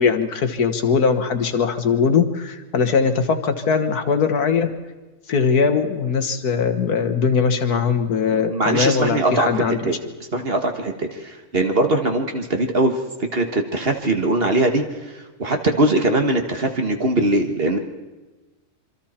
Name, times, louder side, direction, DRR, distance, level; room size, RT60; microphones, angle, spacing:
voice 1, 0.0-4.7 5.3-9.9, left 5 dB, 75° left, 8 dB, 1.8 m, -20 dB
voice 2, 8.3-10.0 10.3-14.8 15.4-17.8, right 2 dB, 40° right, 4 dB, 1.7 m, -21 dB
26.0 x 24.5 x 4.4 m, 1.2 s
omnidirectional pair, 1.6 m